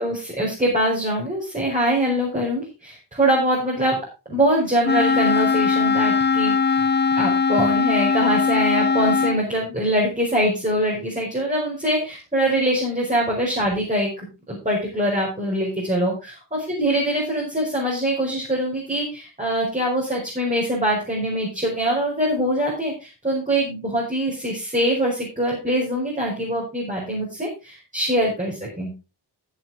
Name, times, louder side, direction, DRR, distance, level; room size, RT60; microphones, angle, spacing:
voice 1, 0.0-4.0 4.3-6.9 7.2-14.1 14.5-16.3 16.7-29.1, right 1 dB, 20° right, -3 dB, 5.2 m, -23 dB
Wind instrument woodwind instrument, 4.8-9.4, left 5 dB, 25° left, 0.7 m, -20 dB
14.5 x 8.2 x 3.8 m, 0.30 s
wide cardioid pair, 105°, 42 cm